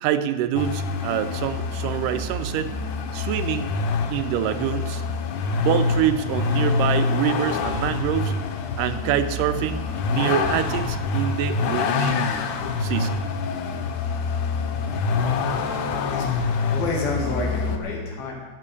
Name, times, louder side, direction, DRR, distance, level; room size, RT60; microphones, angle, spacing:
voice 1, 0.0-2.8 3.1-3.7 4.1-5.0 5.6-8.3 8.8-9.8 10.1-12.2 12.8-13.2, right 10 dB, 80° right, 11 dB, 2.1 m, -25 dB
Vehicle, 0.6-17.8, left 4 dB, 70° left, 2.3 m, -26 dB
voice 2, 15.2-16.3 16.7-18.3, left 3 dB, 90° left, -2 dB, 3.8 m, -30 dB
12.5 x 9.0 x 6.8 m, 1.4 s
omnidirectional pair, 4.0 m